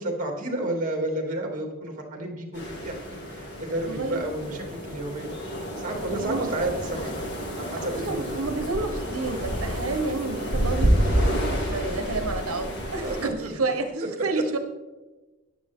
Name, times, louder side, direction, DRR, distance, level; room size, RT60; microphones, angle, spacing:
voice 1, 0.0-5.4 5.8-7.1 7.6-8.2 13.0-13.5, right 1 dB, 40° right, 2 dB, 2.7 m, -31 dB
sound 1, 2.5-13.3, equal, 55° left, 2.4 m, -29 dB
voice 2, 3.9-4.3 5.9-6.5 7.8-14.6, right 3 dB, 80° right, 6 dB, 0.9 m, -30 dB
14.0 x 10.5 x 3.6 m, 1.2 s
head